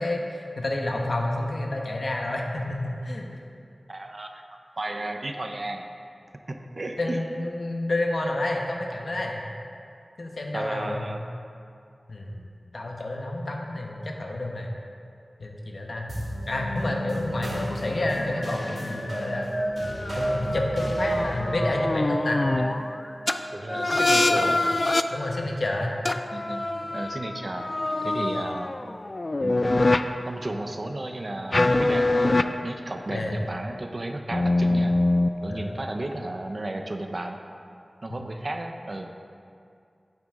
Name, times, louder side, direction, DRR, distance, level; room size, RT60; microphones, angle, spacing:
voice 1, 0.0-3.3 7.0-9.4 10.2-11.1 12.1-12.4 12.7-14.7 15.4-16.1 16.5-19.5 20.1-22.4 25.1-25.9 33.1-33.4 35.5-35.8, left 1 dB, 70° left, 0 dB, 1.1 m, -29 dB
voice 2, 3.9-4.4 4.8-5.9 6.5-7.2 10.5-11.3 22.6-22.7 23.5-24.8 26.3-27.6 28.0-28.7 29.4-29.7 30.2-32.3 32.6-35.0 35.4-37.4 38.0-39.1, right 2 dB, 50° right, 5 dB, 0.7 m, -33 dB
sound 1, 16.1-24.8, right 1 dB, 65° right, 1.9 m, -32 dB
sound 2, 18.1-22.9 23.3-23.4 23.7-25.0 26.1-30.0 31.5-32.4 33.3-33.8 34.3-35.8, left 2 dB, 50° left, 0.3 m, -25 dB
9.3 x 8.0 x 3.7 m, 2.4 s
wide cardioid pair, 65°, 0 cm